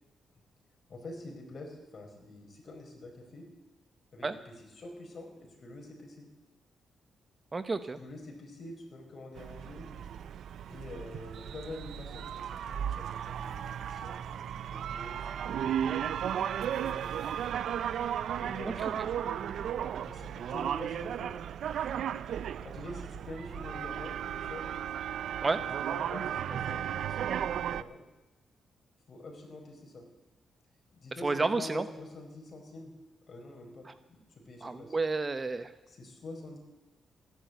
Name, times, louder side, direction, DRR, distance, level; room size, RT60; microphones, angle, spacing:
voice 1, 0.9-3.4 4.1-6.3 8.0-9.9 10.7-15.9 16.8-17.4 18.3-19.4 20.0-21.3 22.6-24.6 25.9-28.0 29.1-30.1 30.9-32.9 33.3-35.0 35.9-36.6, left 2 dB, 45° left, 2 dB, 4.7 m, -46 dB
voice 2, 7.5-8.0 18.8-18.9 25.4-25.6 31.2-31.8 34.6-35.7, right 3 dB, 30° right, 12 dB, 0.9 m, -30 dB
sound 1, 9.4-27.8, right 9 dB, 75° right, 0.5 m, -35 dB
15.0 x 11.0 x 8.1 m, 1.1 s
cardioid pair, 95°, 0 cm